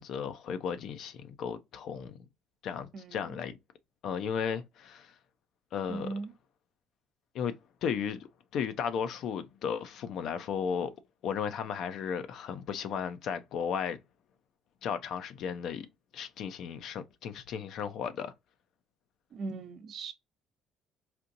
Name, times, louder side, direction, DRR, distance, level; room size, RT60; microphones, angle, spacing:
voice 1, 0.0-2.3 2.6-3.6 4.0-5.1 5.7-6.1 7.3-8.3 8.5-10.9 11.2-14.0 14.8-15.9 16.1-18.3, left 7 dB, 65° left, 0.6 m, -35 dB
voice 2, 2.9-3.3 5.9-6.3 19.3-20.1, right 3 dB, 60° right, 0.8 m, -38 dB
4.3 x 2.5 x 2.6 m
supercardioid pair, 65°, 0 cm